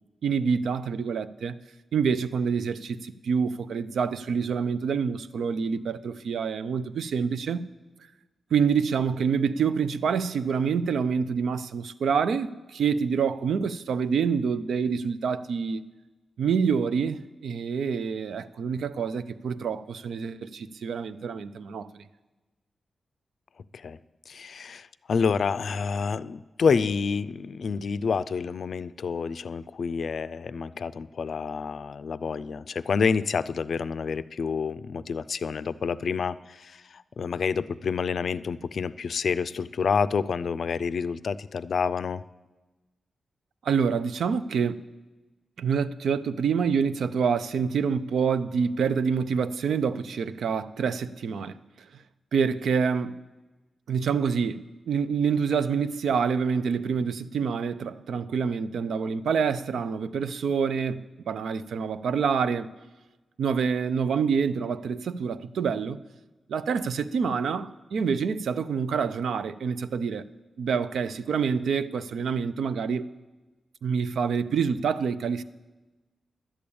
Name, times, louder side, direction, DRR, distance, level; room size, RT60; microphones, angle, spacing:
voice 1, 0.2-1.6 1.9-7.6 8.5-15.8 16.4-22.0 43.6-44.8 45.6-51.6 52.3-53.2 53.9-62.7 63.4-66.0 66.5-70.2 70.6-73.1 73.8-75.4, right 6 dB, 90° right, 0.5 m, -27 dB
voice 2, 24.3-42.2, left 5 dB, 60° left, 0.4 m, -28 dB
11.0 x 8.5 x 8.6 m
wide cardioid pair, 120°, 0 cm